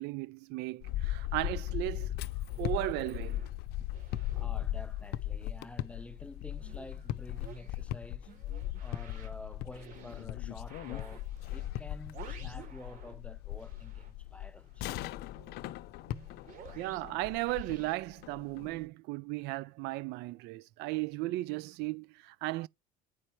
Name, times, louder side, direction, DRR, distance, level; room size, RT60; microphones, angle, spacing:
voice 1, 0.0-2.1 2.6-3.4 16.7-22.7, right 19 dB, 70° right, 0.5 m, -36 dB
sound 1, 0.7-5.4 5.7-13.3 13.6-18.8, right 8 dB, 55° right, 3.8 m, -55 dB
sound 2, 0.8-18.8, left 13 dB, 65° left, 0.6 m, -38 dB
voice 2, 4.3-8.3 8.8-14.9, left 1 dB, 5° left, 0.6 m, -49 dB
8.9 x 5.4 x 4.5 m
cardioid pair, 120°, 18 cm